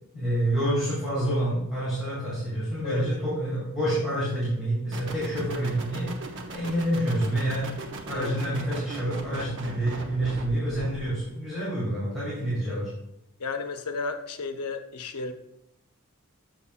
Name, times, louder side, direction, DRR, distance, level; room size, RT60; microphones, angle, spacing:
voice 1, 0.1-6.1 6.5-7.7 8.1-12.9, right 1 dB, ahead, -11 dB, 2.4 m, -28 dB
sound 1, 4.9-11.3, right 2 dB, 55° right, 0.7 m, -39 dB
voice 2, 13.4-15.3, left 4 dB, 85° left, 6 dB, 0.6 m, -33 dB
7.0 x 6.3 x 2.4 m, 0.83 s
head